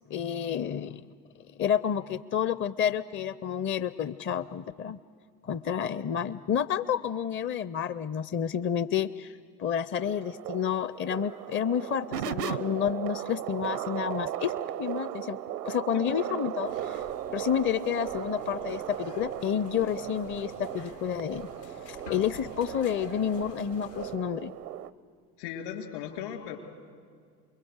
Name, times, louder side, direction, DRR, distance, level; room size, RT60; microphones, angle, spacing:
voice 1, 0.1-1.1 1.5-5.0 5.4-14.5 14.8-15.4 15.6-17.0 17.3-24.5, left 8 dB, 25° left, 14 dB, 0.6 m, -30 dB
sound 1, 10.0-24.9, right 11 dB, 80° right, 0.8 m, -37 dB
sound 2, 16.6-24.2, left 5 dB, 90° left, 2.6 m, -48 dB
voice 2, 25.4-26.6, left 9 dB, 70° left, 2 dB, 4.3 m, -37 dB
29.0 x 22.0 x 8.1 m, 2.1 s
figure-of-eight pair, 65°, 47 cm